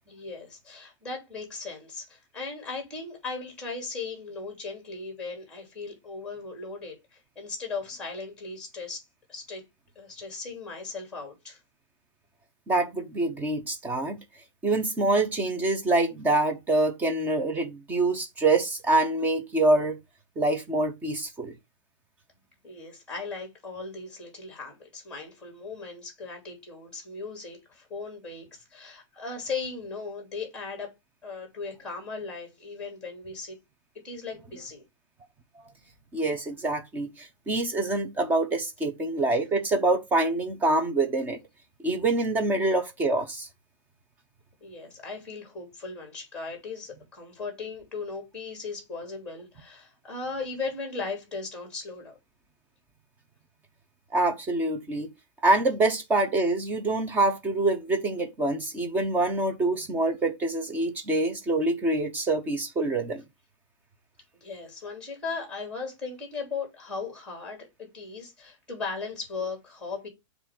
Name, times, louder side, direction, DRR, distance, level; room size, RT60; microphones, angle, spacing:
voice 1, 0.1-9.0 9.3-9.6 9.9-11.6 22.6-30.9 31.2-33.6 34.0-34.8 44.6-52.2 64.4-70.1, left 4 dB, 5° left, 2.9 m, -37 dB
voice 2, 12.7-14.2 14.6-20.0 20.4-21.5 36.1-41.4 41.8-43.5 54.1-55.1 55.4-63.2, right 2 dB, 10° right, 0.8 m, -25 dB
7.4 x 2.7 x 5.9 m
supercardioid pair, 170°, 16 cm